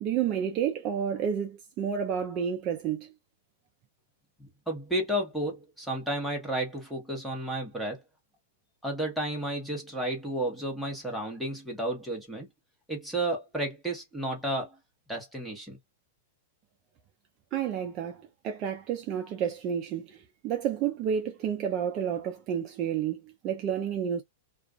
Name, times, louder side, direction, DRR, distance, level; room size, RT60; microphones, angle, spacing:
voice 1, 0.0-3.1 17.5-24.2, right 8 dB, 30° right, 0.4 m, -30 dB
voice 2, 4.4-8.0 8.8-12.5 12.9-14.7 15.1-15.8, right 1 dB, ahead, 1.0 m, -32 dB
2.4 x 2.3 x 2.3 m
supercardioid pair, 155°, 0 cm